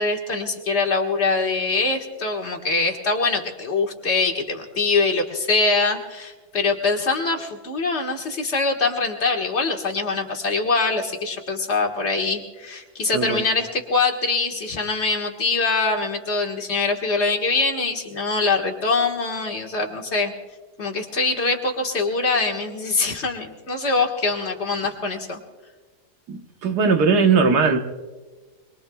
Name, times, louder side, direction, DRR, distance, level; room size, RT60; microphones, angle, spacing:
voice 1, 0.0-20.3 20.8-25.4, left 3 dB, 45° left, 1.9 m, -23 dB
voice 2, 13.1-13.4 26.3-27.8, right 5 dB, 80° right, 1.7 m, -19 dB
27.0 x 21.5 x 2.3 m
omnidirectional pair, 1.7 m